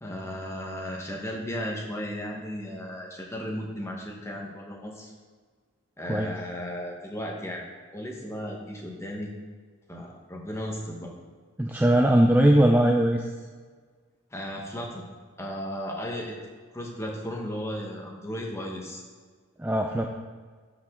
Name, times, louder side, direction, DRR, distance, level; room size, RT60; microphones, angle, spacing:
voice 1, 0.0-5.1 6.0-7.6 7.9-9.3 9.9-11.1 14.3-15.0 15.4-16.3 16.7-19.0, equal, 15° left, -1 dB, 1.1 m, -35 dB
voice 2, 11.6-13.3 19.6-20.1, right 1 dB, 10° right, 2 dB, 0.4 m, -20 dB
12.5 x 4.9 x 3.7 m, 1.5 s
head